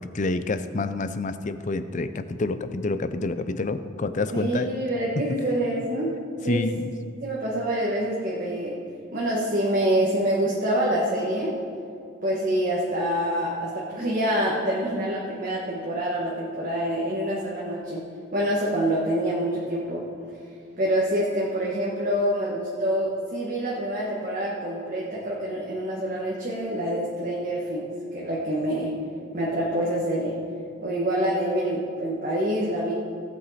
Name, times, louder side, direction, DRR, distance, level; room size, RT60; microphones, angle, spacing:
voice 1, 0.0-4.7 5.2-5.3 6.5-6.9, left 3 dB, 40° left, 11 dB, 0.5 m, -28 dB
voice 2, 4.3-6.2 6.4-6.7 7.2-8.8 9.1-11.6 12.2-18.1 18.3-20.0 20.8-29.0 29.3-30.4 30.8-32.9, right 1 dB, 40° right, -5 dB, 1.4 m, -26 dB
17.0 x 8.1 x 4.2 m, 2.4 s
head